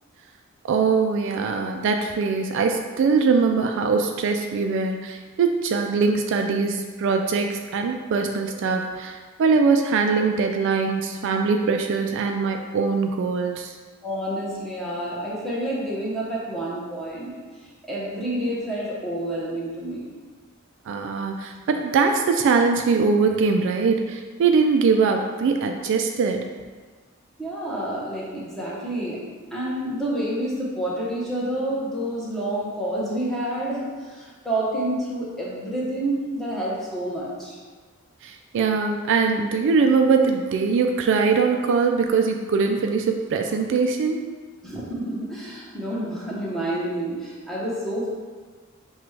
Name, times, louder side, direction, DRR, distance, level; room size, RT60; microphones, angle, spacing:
voice 1, 0.6-13.7 20.9-26.5 38.2-44.3, right 5 dB, 60° right, 4 dB, 0.3 m, -22 dB
voice 2, 14.0-17.3 17.9-20.1 27.4-29.3 29.5-37.6 44.6-48.1, right 1 dB, ahead, -7 dB, 1.0 m, -28 dB
5.9 x 2.3 x 3.2 m, 1.4 s
head